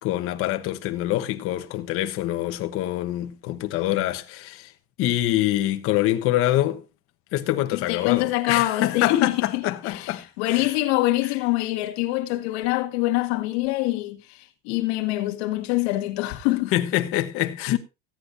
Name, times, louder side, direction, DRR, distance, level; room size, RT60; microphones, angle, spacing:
voice 1, 0.0-4.7 5.0-6.8 7.3-10.7 11.2-11.3 16.7-17.8, left 14 dB, 40° left, 1.1 m, -25 dB
voice 2, 7.7-14.4 14.6-16.7, left 17 dB, 75° left, 1.8 m, -25 dB
16.0 x 9.9 x 2.6 m
cardioid pair, 170°, 33 cm